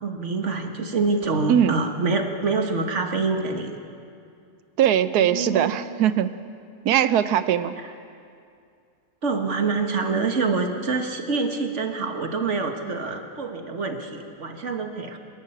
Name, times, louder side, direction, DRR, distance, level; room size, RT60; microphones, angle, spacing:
voice 1, 0.0-3.8 5.2-5.8 7.8-7.9 9.2-15.2, right 4 dB, 50° right, 5 dB, 1.8 m, -26 dB
voice 2, 4.8-6.3 6.8-7.7, right 10 dB, 85° right, 13 dB, 1.3 m, -20 dB
27.0 x 11.5 x 8.7 m, 2.4 s
omnidirectional pair, 1.6 m